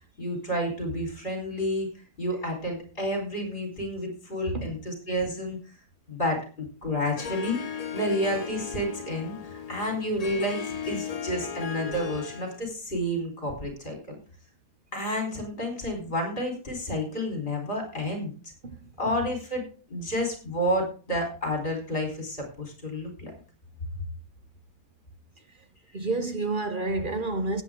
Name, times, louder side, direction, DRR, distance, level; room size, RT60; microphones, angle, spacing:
voice 1, 0.2-1.9 2.2-5.6 6.1-7.6 7.9-14.2 14.9-18.3 19.0-19.6 19.9-23.3, equal, 35° left, 4.4 m, -30 dB
Harp, 7.2-12.6, left 7 dB, 75° left, 0.3 m, -36 dB
voice 2, 25.9-27.6, right 3 dB, 40° right, 0.8 m, -29 dB
17.0 x 8.5 x 3.7 m
omnidirectional pair, 1.7 m